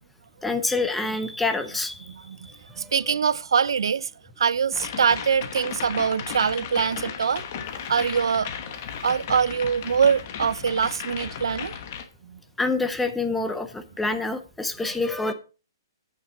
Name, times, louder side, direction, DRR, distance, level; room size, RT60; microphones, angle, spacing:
voice 1, 0.4-2.1 12.6-15.3, left 3 dB, 5° left, 0.5 m, -26 dB
voice 2, 2.1-2.5 2.8-4.1 4.4-7.4 7.9-8.5 9.0-11.7 12.3-12.4, right 6 dB, 80° right, 0.4 m, -23 dB
sound 1, 4.7-12.0, left 7 dB, 30° left, 1.1 m, -35 dB
9.1 x 8.8 x 4.1 m
hypercardioid pair, 180°, 2 cm